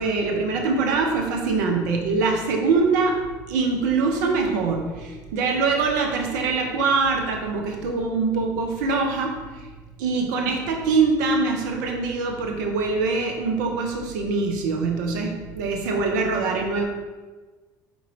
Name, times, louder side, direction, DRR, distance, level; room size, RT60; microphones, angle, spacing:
voice 1, 0.0-3.2 3.5-9.7 10.0-16.9, right 4 dB, 75° right, 2 dB, 0.5 m, -23 dB
4.5 x 4.0 x 2.6 m, 1.3 s
hypercardioid pair, 65°, 10 cm